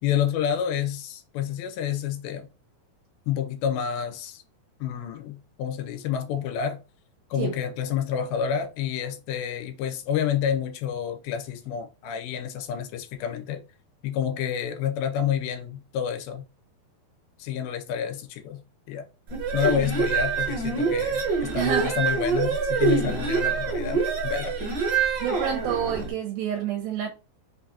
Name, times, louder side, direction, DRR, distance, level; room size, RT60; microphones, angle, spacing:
voice 1, 0.0-2.5 3.3-4.4 4.8-6.8 7.3-13.6 14.0-16.5 17.4-18.6 18.9-19.0 19.5-24.6, left 8 dB, 90° left, 2.5 m, -29 dB
sound 1, 19.3-26.1, right 5 dB, 65° right, 2.4 m, -25 dB
voice 2, 21.5-21.9 25.2-27.1, right 9 dB, 85° right, 2.5 m, -28 dB
5.6 x 2.4 x 2.7 m
omnidirectional pair, 4.3 m